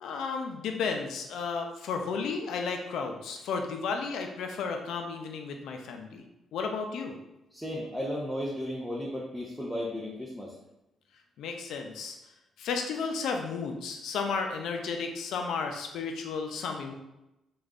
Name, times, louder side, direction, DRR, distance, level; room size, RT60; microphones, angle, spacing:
voice 1, 0.0-6.2 6.5-7.2 11.4-12.2 12.6-16.9, left 5 dB, 80° left, 4 dB, 0.5 m, -33 dB
voice 2, 7.5-10.5, equal, ahead, -5 dB, 0.6 m, -34 dB
3.0 x 2.4 x 3.5 m, 0.91 s
cardioid pair, 90°, 0 cm